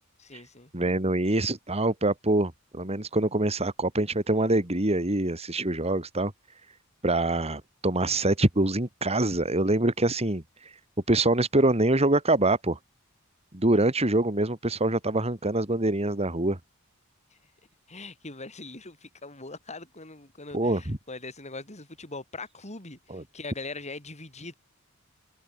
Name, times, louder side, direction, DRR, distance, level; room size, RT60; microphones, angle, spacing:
voice 1, 0.2-0.7 17.9-24.5, left 3 dB, 35° left, 8.0 m, -41 dB
voice 2, 0.7-6.3 7.0-10.7 11.1-12.8 13.5-16.6 20.5-21.0 23.1-23.2, right 2 dB, 30° right, 2.9 m, -25 dB
head